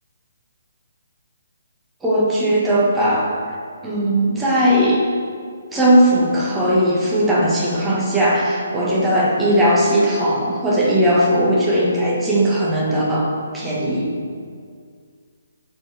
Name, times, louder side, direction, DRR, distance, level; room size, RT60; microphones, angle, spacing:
voice 1, 2.0-3.3 3.8-5.0 5.7-13.3 13.5-14.1, equal, 5° right, -6 dB, 1.3 m, -18 dB
17.0 x 6.8 x 3.3 m, 2.1 s
hypercardioid pair, 175°, 0 cm